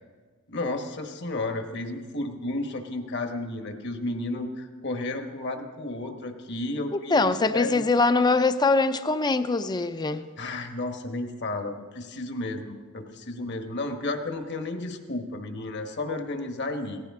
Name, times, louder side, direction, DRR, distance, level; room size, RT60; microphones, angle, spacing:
voice 1, 0.5-7.8 10.4-17.0, left 2 dB, 55° left, 5 dB, 1.2 m, -32 dB
voice 2, 6.9-10.3, left 3 dB, 20° left, 11 dB, 0.5 m, -23 dB
18.0 x 14.5 x 3.6 m, 1.4 s
head